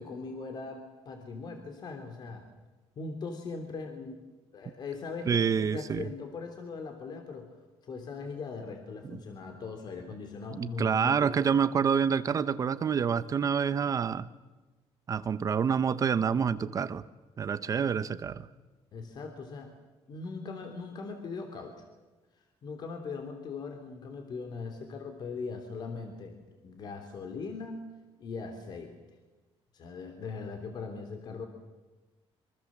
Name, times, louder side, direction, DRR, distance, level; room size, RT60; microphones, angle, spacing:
voice 1, 0.0-2.5 3.0-4.2 4.5-7.5 7.8-11.5 18.9-19.7 20.1-21.8 22.6-26.4 26.6-27.9 28.2-28.9 29.7-31.5, left 4 dB, 40° left, 5 dB, 3.0 m, -40 dB
voice 2, 5.3-6.1 10.5-14.3 15.1-17.0 17.4-18.5, right 7 dB, 35° right, 14 dB, 0.8 m, -27 dB
26.0 x 24.5 x 7.4 m, 1.2 s
cardioid pair, 160°, 11 cm